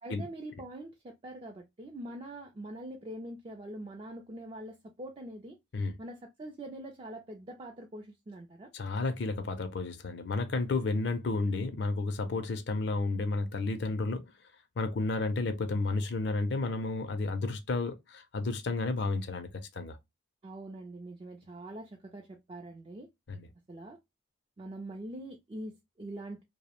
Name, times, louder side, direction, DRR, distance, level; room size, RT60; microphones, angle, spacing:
voice 1, 0.0-5.6 6.0-8.7 20.4-23.1 23.7-24.0 24.6-26.4, right 1 dB, 30° right, 0.4 m, -44 dB
voice 2, 8.7-14.3 14.8-19.5 19.7-20.0 23.3-23.5, left 3 dB, 60° left, 0.5 m, -32 dB
2.6 x 2.0 x 2.9 m
head